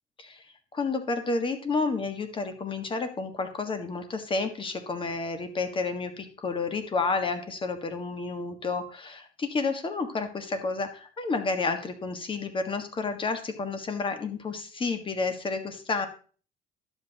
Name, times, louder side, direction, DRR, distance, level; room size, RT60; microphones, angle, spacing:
voice 1, 0.7-16.1, left 4 dB, 30° left, 7 dB, 1.5 m, -30 dB
11.5 x 7.9 x 2.9 m, 0.39 s
cardioid pair, 110°, 17 cm